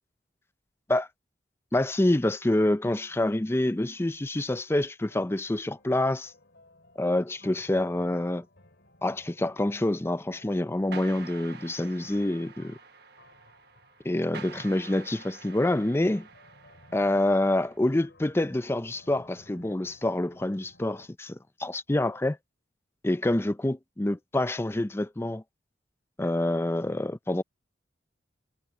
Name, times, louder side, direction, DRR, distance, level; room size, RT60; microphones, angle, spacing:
voice 1, 1.7-6.3 7.0-8.4 9.0-12.8 14.0-16.3 16.9-22.4 23.0-25.4 26.2-27.4, left 1 dB, 15° left, 0.5 m, -27 dB
sound 1, 4.0-4.4 5.1-21.1, left 1 dB, 65° left, 4.3 m, -59 dB
sound 2, 10.9-17.8, right 5 dB, 60° right, 1.3 m, -48 dB
head